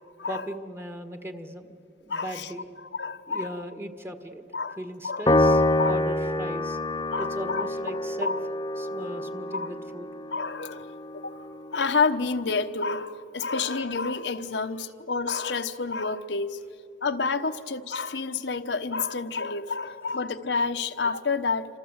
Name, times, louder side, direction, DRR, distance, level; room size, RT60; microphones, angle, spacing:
voice 1, 0.2-2.7 3.3-4.4 4.8-6.8 7.2-8.4 8.8-10.1, equal, 15° right, 1.6 m, -38 dB
voice 2, 2.1-2.5 2.9-3.5 4.5-4.8 5.0-6.0 7.1-7.7 8.2-8.4 9.5-9.7 10.3-10.9 11.2-11.4 11.7-16.6 17.0-21.7, left 4 dB, 75° left, 1.1 m, -29 dB
Piano, 5.3-11.8, left 1 dB, 25° left, 0.9 m, -27 dB
28.0 x 26.0 x 8.1 m
head